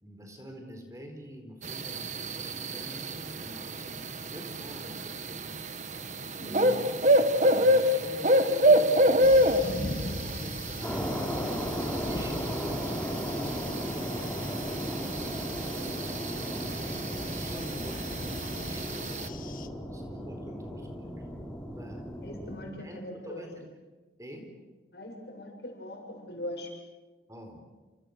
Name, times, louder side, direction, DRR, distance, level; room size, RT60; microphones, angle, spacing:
voice 1, 0.0-5.6 6.1-10.9 11.4-15.3 16.2-19.4 19.9-21.1 21.7-22.0 22.6-23.7 24.2-24.5 27.3-27.6, equal, 20° right, 4 dB, 4.5 m, -46 dB
sound 1, 1.6-19.3, equal, 40° right, 1.4 m, -28 dB
voice 2, 6.4-6.7 22.2-23.4 24.9-26.7, left 1 dB, 70° left, 2 dB, 7.4 m, -41 dB
sound 2, 9.2-19.7, left 2 dB, 50° left, 1.3 m, -41 dB
sound 3, 10.8-22.6, equal, 5° left, 4.2 m, -36 dB
29.5 x 29.0 x 6.7 m, 1.3 s
head